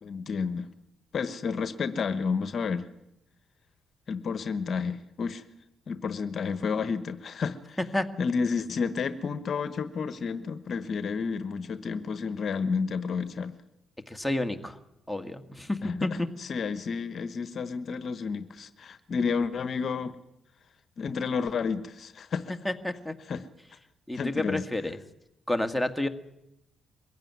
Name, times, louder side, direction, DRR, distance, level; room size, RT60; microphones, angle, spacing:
voice 1, 0.0-0.7 1.1-2.9 4.1-5.4 5.9-7.8 8.2-13.6 15.8-20.1 21.0-22.6 23.3-23.4 24.1-24.6, left 5 dB, 55° left, 1.1 m, -31 dB
voice 2, 14.1-14.8 15.1-16.3 22.6-23.1 24.1-25.0 25.5-26.1, left 1 dB, 5° left, 1.9 m, -30 dB
23.0 x 15.5 x 9.5 m
cardioid pair, 90°, 0 cm